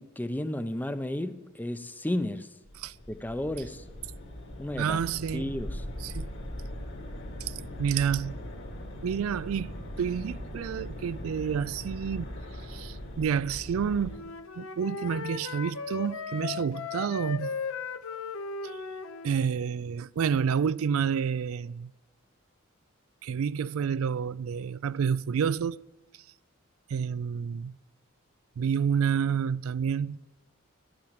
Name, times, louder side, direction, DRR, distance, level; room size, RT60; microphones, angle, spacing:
voice 1, 0.0-2.5 3.1-3.8 4.6-5.0 5.3-5.8, left 1 dB, 10° left, 0.5 m, -33 dB
sound 1, 2.7-14.2, left 1 dB, 60° left, 2.1 m, -40 dB
voice 2, 4.8-5.5 6.0-6.3 7.4-8.4 9.0-9.7 10.0-12.3 12.7-14.2 14.6-17.5 18.6-18.8 19.2-21.9 23.2-25.8 26.9-27.8 28.6-30.2, right 7 dB, 80° right, 0.4 m, -29 dB
Wind instrument woodwind instrument, 14.1-19.3, left 5 dB, 80° left, 0.9 m, -37 dB
12.0 x 8.8 x 9.5 m
head